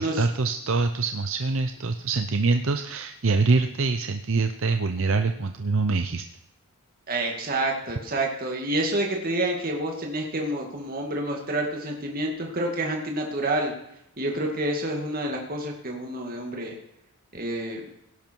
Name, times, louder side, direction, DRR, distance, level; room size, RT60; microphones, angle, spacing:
voice 1, 0.0-6.2, right 3 dB, 60° right, 7 dB, 0.7 m, -24 dB
voice 2, 7.1-13.7 14.2-16.8 17.3-17.9, right 1 dB, 40° right, 1 dB, 2.3 m, -28 dB
17.0 x 11.0 x 4.7 m, 0.80 s
head